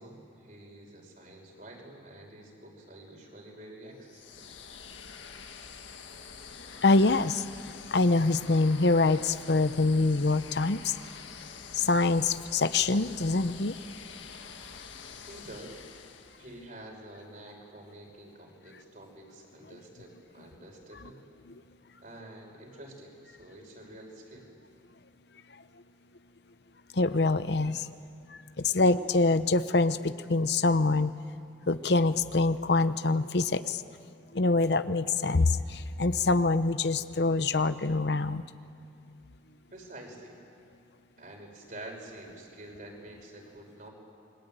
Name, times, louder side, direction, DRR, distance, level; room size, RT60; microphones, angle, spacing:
voice 1, 0.0-4.5 15.2-15.8 16.4-21.2 22.0-24.5 39.7-40.4 41.2-43.9, right 1 dB, 45° right, 1 dB, 5.6 m, -48 dB
sound 1, 4.0-16.7, left 6 dB, 85° left, 1.8 m, -46 dB
voice 2, 6.8-7.4 7.9-11.0 11.7-13.8 26.9-27.9 28.3-31.1 31.7-33.8 34.3-38.4, left 3 dB, 60° left, 12 dB, 0.8 m, -25 dB
28.5 x 23.0 x 9.1 m, 2.4 s
head